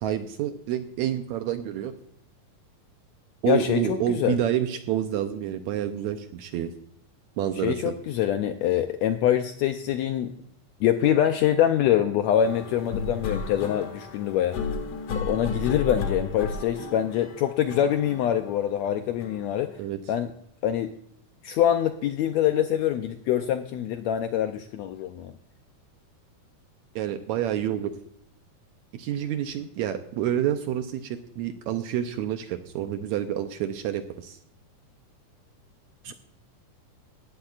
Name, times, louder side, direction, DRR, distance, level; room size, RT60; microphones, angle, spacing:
voice 1, 0.0-1.9 3.4-6.7 7.4-8.0 19.8-20.0 26.9-27.9 28.9-34.4 36.0-36.1, right 10 dB, 75° right, 8 dB, 1.7 m, -28 dB
voice 2, 3.5-4.4 7.6-10.3 10.8-14.6 15.1-19.8 20.1-20.3 20.6-20.9 21.4-25.3, left 10 dB, 85° left, 7 dB, 1.5 m, -24 dB
sound 1, 12.4-19.7, left 4 dB, 55° left, 1.9 m, -33 dB
17.5 x 11.5 x 2.4 m, 0.69 s
omnidirectional pair, 3.8 m